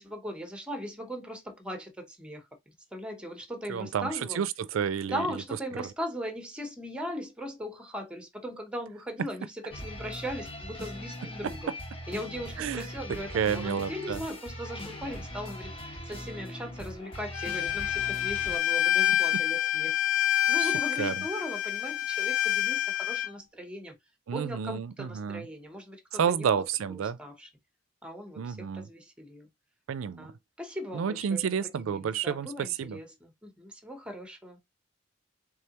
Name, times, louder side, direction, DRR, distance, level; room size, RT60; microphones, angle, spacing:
voice 1, 0.0-4.4 5.0-11.8 12.1-15.7 16.0-20.0 20.5-23.9 24.3-27.5 28.0-29.5 30.0-34.6, equal, 5° right, 0.8 m, -39 dB
voice 2, 3.7-4.1 4.4-5.2 12.6-12.9 13.3-14.2 20.6-20.7 21.0-21.1 24.3-25.5 26.2-27.2 28.4-28.9 29.9-30.3 30.9-33.0, right 7 dB, 85° right, 0.4 m, -30 dB
sound 1, 9.7-18.6, left 1 dB, 30° left, 1.0 m, -40 dB
Bowed string instrument, 17.3-23.3, left 12 dB, 70° left, 0.5 m, -27 dB
3.6 x 3.3 x 2.8 m
head